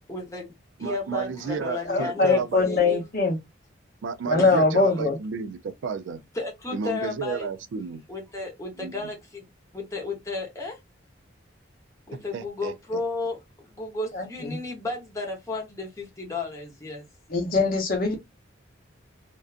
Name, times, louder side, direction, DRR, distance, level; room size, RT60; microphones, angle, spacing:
voice 1, 0.1-0.5 0.8-3.0 4.4-4.5 6.3-7.5 8.1-9.4 9.7-10.8 12.1-17.0, left 3 dB, 15° left, 0.8 m, -33 dB
voice 2, 0.8-2.7 4.0-6.2 6.7-8.0 8.7-9.1 12.3-13.0, right 5 dB, 70° right, 0.3 m, -32 dB
voice 3, 1.9-3.4 4.2-5.2 14.1-14.6 17.3-18.2, left 3 dB, 45° left, 0.7 m, -22 dB
2.5 x 2.2 x 2.4 m
head